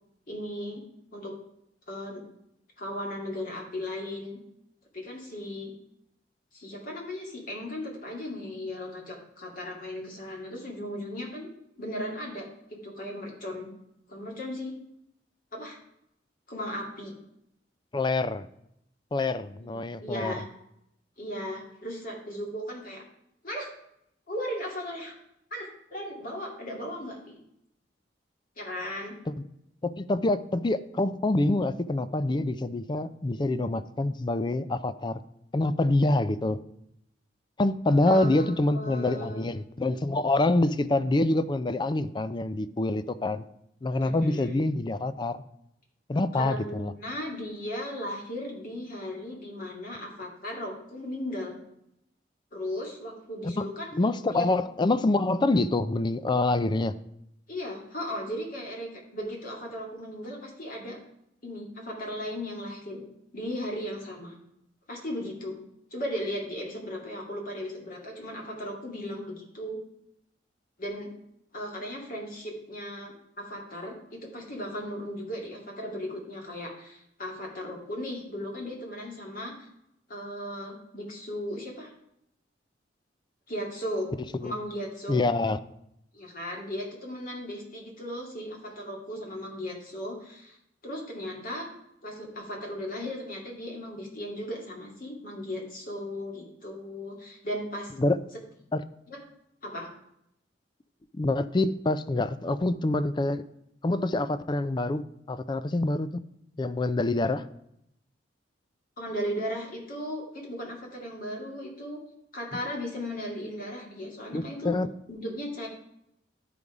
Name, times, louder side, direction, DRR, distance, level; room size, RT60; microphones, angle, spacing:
voice 1, 0.3-0.8 1.1-1.3 1.9-2.2 2.8-4.4 4.9-5.7 6.5-11.5 11.8-13.7 14.1-14.7 15.5-15.8 16.5-17.1 19.6-20.4 21.2-23.0 23.4-23.7 24.3-25.2 25.5-27.4 28.6-29.1 38.1-39.5 44.0-44.7 46.3-51.6 52.5-53.9 54.3-54.5 57.5-61.0 61.4-63.0 63.3-64.4 64.9-65.6 65.9-69.8 70.8-71.1 71.5-79.7 80.1-81.9 83.5-84.1 84.4-85.2 86.1-90.6 90.8-91.7 92.0-97.9 99.1-99.2 99.6-99.9 109.0-112.0 112.3-114.8 115.1-115.7, left 1 dB, 50° left, 0 dB, 2.2 m, -36 dB
voice 2, 17.9-18.5 19.1-20.3 29.8-35.2 35.5-36.6 37.6-43.4 43.8-45.4 46.1-46.9 53.4-53.7 53.9-56.9 84.4-84.5 85.1-85.6 98.0-98.2 98.7-98.8 101.2-103.4 103.8-106.2 106.6-107.4 114.3-114.9, left 2 dB, 25° left, 14 dB, 0.4 m, -26 dB
11.5 x 5.4 x 4.8 m, 0.78 s
head